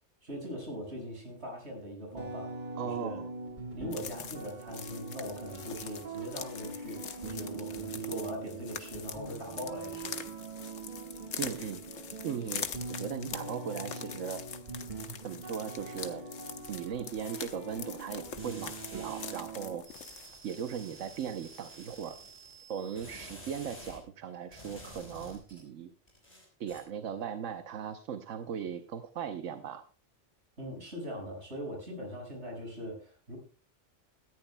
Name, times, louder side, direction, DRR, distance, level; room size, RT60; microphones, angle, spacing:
voice 1, 0.2-2.5 2.8-3.2 3.7-10.1 30.6-33.4, equal, 60° right, 0 dB, 6.1 m, -41 dB
sound 1, 2.1-19.8, right 4 dB, 40° right, 1.9 m, -42 dB
voice 2, 2.8-3.3 11.4-11.8 12.2-14.4 15.2-16.2 16.7-19.8 20.4-22.2 22.7-25.9 26.6-29.8, right 8 dB, 85° right, 8 dB, 1.2 m, -38 dB
sound 2, 3.9-20.4, left 7 dB, 90° left, 1.4 m, -44 dB
sound 3, 18.4-19.4 19.8-24.0 24.5-25.6 26.1-26.8, equal, 30° left, 5.0 m, -50 dB
18.0 x 14.0 x 2.2 m, 0.37 s
omnidirectional pair, 1.3 m